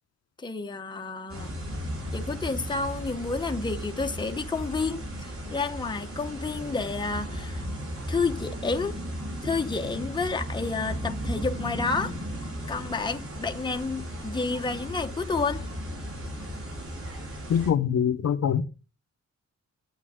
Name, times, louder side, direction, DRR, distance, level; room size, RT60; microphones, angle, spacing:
voice 1, 0.4-1.6 2.1-7.6 8.1-9.0 9.4-12.2 12.7-15.7, left 4 dB, 15° left, 0.9 m, -30 dB
sound 1, 1.3-17.7, equal, 50° right, 6.9 m, -35 dB
voice 2, 17.5-18.6, left 8 dB, 60° left, 0.9 m, -24 dB
11.0 x 9.0 x 3.7 m
wide cardioid pair, 145°, 29 cm